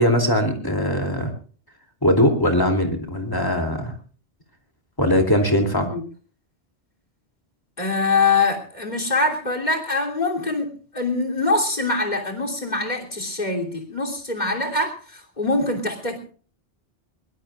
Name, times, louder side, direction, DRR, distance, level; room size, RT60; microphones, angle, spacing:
voice 1, 0.0-1.3 2.0-3.9 5.0-5.9, equal, 20° left, 4 dB, 2.8 m, -20 dB
voice 2, 7.8-16.2, left 3 dB, 40° left, 6 dB, 3.2 m, -24 dB
22.5 x 20.0 x 2.4 m, 0.40 s
omnidirectional pair, 1.1 m